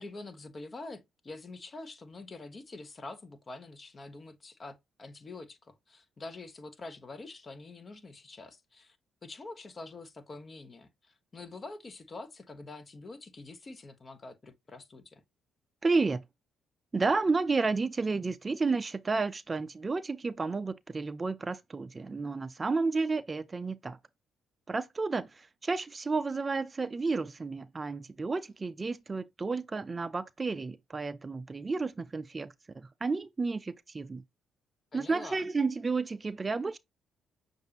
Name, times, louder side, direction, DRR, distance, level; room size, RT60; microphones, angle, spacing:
voice 1, 0.0-9.0 9.2-15.2 34.9-35.4, left 3 dB, 35° left, 1.1 m, -46 dB
voice 2, 15.8-16.2 16.9-24.0 24.7-34.2 34.9-36.8, right 4 dB, 30° right, 0.4 m, -31 dB
6.4 x 2.6 x 2.9 m
hypercardioid pair, 50°, 0 cm